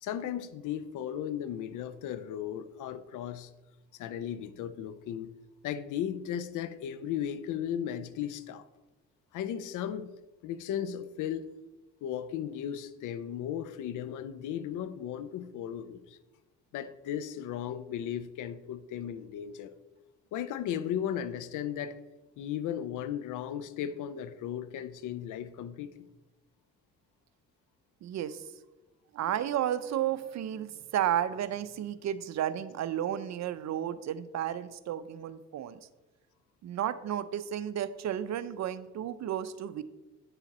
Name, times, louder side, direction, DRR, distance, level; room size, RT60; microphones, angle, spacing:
voice 1, 0.0-3.5 4.0-5.3 5.6-8.6 9.3-10.1 10.4-11.4 12.0-16.2 16.7-19.7 20.3-22.0 22.4-25.9, left 9 dB, 85° left, 0.6 m, -36 dB
voice 2, 28.0-28.5 29.1-35.8 36.6-39.8, right 10 dB, 65° right, 0.7 m, -32 dB
9.1 x 6.9 x 4.2 m
cardioid pair, 90°, 30 cm